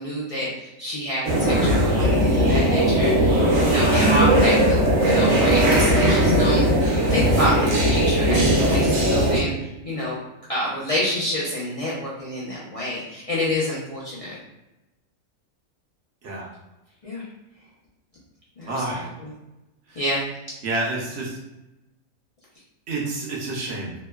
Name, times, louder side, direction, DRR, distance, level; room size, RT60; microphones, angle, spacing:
voice 1, 0.0-6.6 7.1-10.2 10.5-14.3 17.0-17.2 18.6-18.8 20.0-20.3, left 1 dB, 45° left, -8 dB, 0.4 m, -27 dB
sound 1, 1.2-9.4, right 1 dB, 85° right, 1.1 m, -18 dB
voice 2, 3.7-4.0 16.2-16.5 18.7-19.1 19.9-20.0 20.6-21.4 22.9-23.9, right 2 dB, 65° right, -3 dB, 0.8 m, -29 dB
2.9 x 2.1 x 2.2 m, 0.97 s
omnidirectional pair, 1.3 m